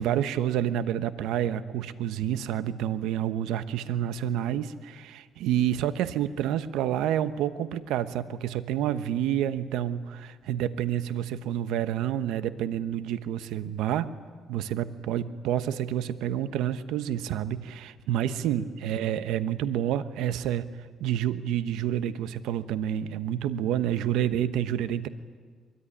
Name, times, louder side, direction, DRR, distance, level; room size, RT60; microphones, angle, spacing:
voice 1, 0.0-14.1 14.5-20.7 21.0-25.1, right 10 dB, 90° right, 12 dB, 1.1 m, -29 dB
23.0 x 22.5 x 10.0 m, 1.5 s
cardioid pair, 105°, 0 cm